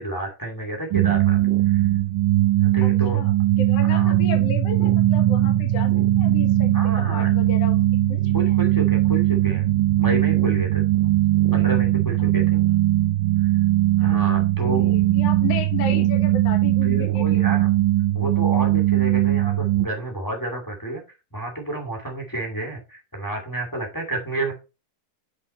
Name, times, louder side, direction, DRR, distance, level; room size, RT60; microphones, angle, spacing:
voice 1, 0.0-1.4 1.6-1.9 2.6-3.2 3.8-4.2 6.7-7.3 8.3-9.7 10.0-10.8 11.5-12.6 13.4-13.5 14.0-14.8 16.8-17.7 18.1-21.0 21.3-24.5, right 2 dB, 10° left, 0 dB, 1.5 m, -30 dB
sound 1, 0.9-19.9, right 15 dB, 85° right, 2.3 m, -20 dB
voice 2, 2.8-3.3 3.6-5.9 6.2-6.8 7.1-7.8 8.1-8.6 12.2-12.6 14.0-17.5, left 7 dB, 55° left, 6 dB, 2.3 m, -34 dB
9.6 x 4.3 x 4.2 m, 0.30 s
omnidirectional pair, 3.7 m